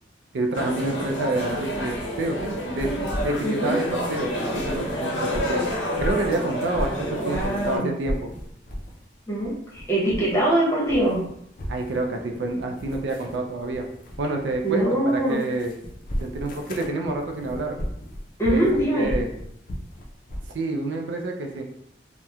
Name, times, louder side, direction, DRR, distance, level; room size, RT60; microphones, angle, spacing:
voice 1, 0.3-2.9 3.2-5.7 6.0-8.3 11.7-13.9 14.2-15.7 16.2-17.8 18.5-18.6 18.9-19.3 20.5-21.6, right 2 dB, 70° right, 3 dB, 0.4 m, -28 dB
sound 1, 0.5-7.8, equal, 90° left, 0.7 m, -29 dB
sound 2, 2.8-5.0 5.2-7.7 8.0-9.0 9.3-10.5 10.8-20.6, equal, 45° left, 0.4 m, -35 dB
voice 2, 3.4-3.8 7.2-7.9 9.3-11.2 14.6-15.4 18.4-19.1, right 1 dB, 15° left, -6 dB, 0.8 m, -23 dB
2.9 x 2.1 x 2.3 m, 0.74 s
head